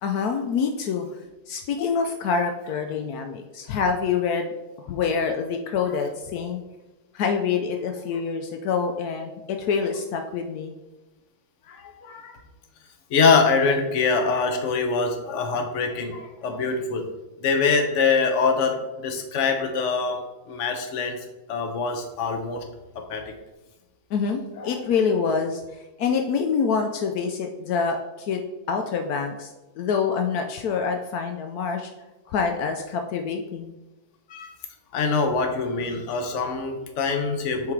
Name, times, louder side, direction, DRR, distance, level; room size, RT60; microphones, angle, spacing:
voice 1, 0.0-1.1 1.5-6.6 7.1-10.8 24.1-25.6 26.0-28.4 28.7-31.9 32.3-33.7, left 5 dB, 85° left, 4 dB, 0.8 m, -26 dB
voice 2, 11.7-12.4 13.1-17.1 17.4-18.8 19.0-20.2 20.5-21.2 21.5-22.6 22.9-23.3 24.6-24.8 34.3-34.5 34.9-37.7, left 4 dB, 55° left, 5 dB, 0.9 m, -24 dB
7.4 x 3.8 x 4.6 m, 1.1 s
omnidirectional pair, 2.3 m